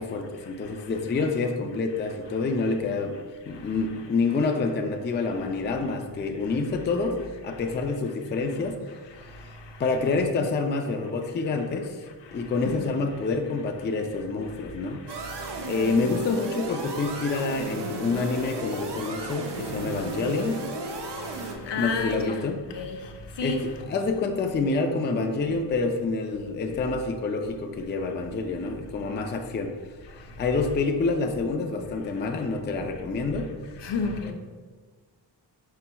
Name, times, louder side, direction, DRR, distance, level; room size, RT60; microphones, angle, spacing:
voice 1, 0.0-3.2 3.5-8.8 9.8-12.0 12.3-15.0 15.6-20.6 21.8-22.6 23.4-29.7 30.4-33.5, left 3 dB, 25° left, 0.3 m, -27 dB
voice 2, 12.6-12.9 21.5-22.5 22.7-23.1 23.4-23.7 33.8-34.3, left 4 dB, 70° left, 0.7 m, -30 dB
sound 1, 15.1-21.6, right 2 dB, 65° right, 0.7 m, -34 dB
5.6 x 4.1 x 2.2 m
cardioid pair, 95°, 45 cm